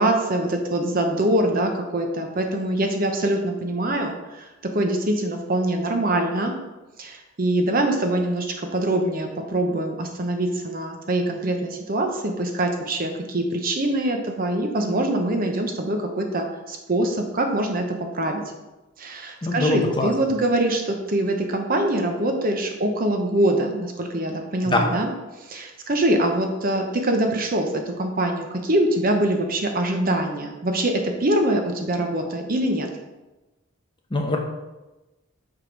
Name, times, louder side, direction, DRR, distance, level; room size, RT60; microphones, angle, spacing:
voice 1, 0.0-6.5 7.0-18.4 19.0-25.1 25.4-30.9 31.2-32.9, right 1 dB, 40° right, 4 dB, 0.8 m, -24 dB
voice 2, 19.4-20.1 24.7-24.8 34.1-34.4, left 2 dB, 20° left, 1 dB, 0.7 m, -22 dB
5.6 x 5.1 x 4.5 m, 1.1 s
head